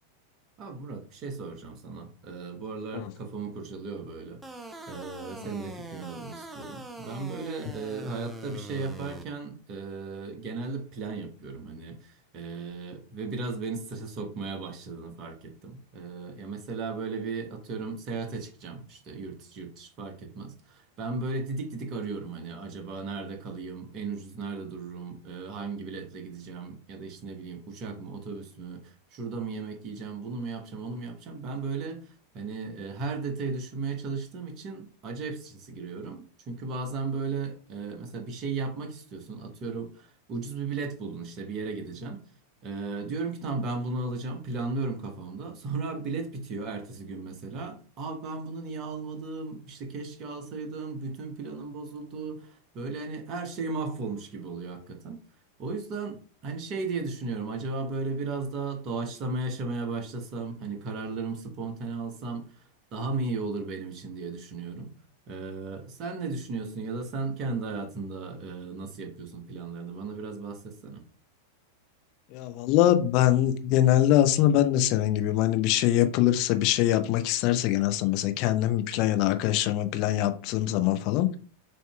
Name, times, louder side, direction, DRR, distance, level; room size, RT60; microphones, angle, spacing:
voice 1, 0.6-4.4 4.9-32.1 32.3-42.2 42.6-55.2 55.6-62.5 62.9-64.9 65.3-71.0, right 4 dB, 35° right, 1.0 m, -35 dB
sound 1, 4.4-9.2, right 2 dB, 10° right, 0.6 m, -42 dB
voice 2, 72.3-81.3, left 13 dB, 40° left, 0.5 m, -23 dB
6.5 x 2.8 x 2.3 m
figure-of-eight pair, 90°, 0 cm